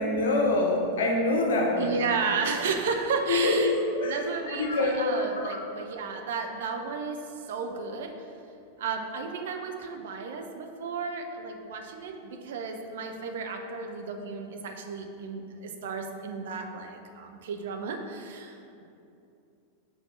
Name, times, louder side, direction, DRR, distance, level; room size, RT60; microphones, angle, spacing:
voice 1, 0.0-1.9 3.3-4.2 4.5-5.7, left 2 dB, 60° left, 1 dB, 1.2 m, -25 dB
voice 2, 1.8-3.7 4.0-8.1 8.8-18.8, right 5 dB, 60° right, 4 dB, 0.7 m, -33 dB
6.4 x 4.4 x 6.4 m, 2.6 s
figure-of-eight pair, 90°, 0 cm